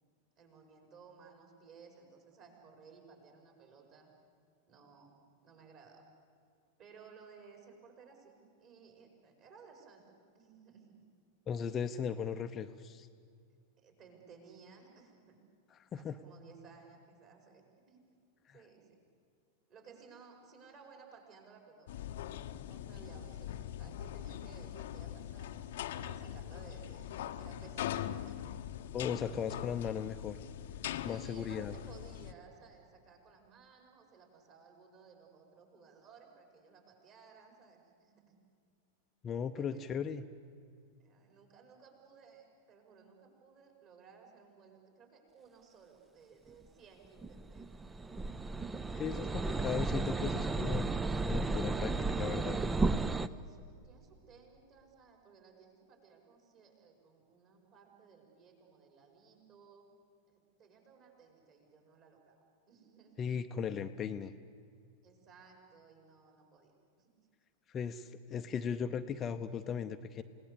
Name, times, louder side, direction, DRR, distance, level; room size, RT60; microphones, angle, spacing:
voice 1, 0.4-4.1 4.7-5.2 5.4-6.0 6.8-10.9 11.6-11.7 13.8-15.4 15.9-18.0 18.5-19.0 19.7-21.9 22.5-28.7 31.0-38.4 39.5-39.9 41.0-48.3 52.9-59.9 60.3-63.3 65.0-67.1, right 5 dB, 40° right, 2 dB, 5.7 m, -58 dB
voice 2, 11.5-13.1 15.9-16.1 28.9-30.4 31.0-31.7 39.2-40.2 48.9-50.9 51.2-52.6 63.2-64.3 67.7-70.2, left 7 dB, 25° left, 8 dB, 0.7 m, -37 dB
sound 1, 21.9-32.3, left 11 dB, 55° left, 0.9 m, -42 dB
sound 2, 47.2-53.3, right 3 dB, 10° right, 0.6 m, -33 dB
29.0 x 18.0 x 8.5 m, 2.3 s
figure-of-eight pair, 90°, 0 cm